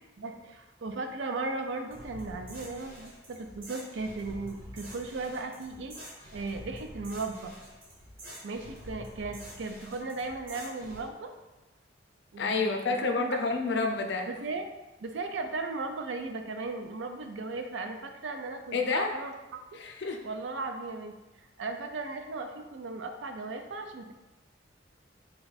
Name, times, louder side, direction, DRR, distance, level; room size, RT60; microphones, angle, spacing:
voice 1, 0.2-5.9 6.3-7.5 8.4-11.3 12.3-13.4 14.3-14.7 15.0-19.3 19.7-19.8 20.2-21.2 21.6-24.1, right 3 dB, 85° right, 6 dB, 0.5 m, -36 dB
sound 1, 1.9-11.1, equal, 50° right, 1.1 m, -47 dB
voice 2, 12.4-14.3 18.7-19.1 19.7-20.2, left 3 dB, 65° left, 4 dB, 0.5 m, -29 dB
4.3 x 2.4 x 3.9 m, 1.1 s
head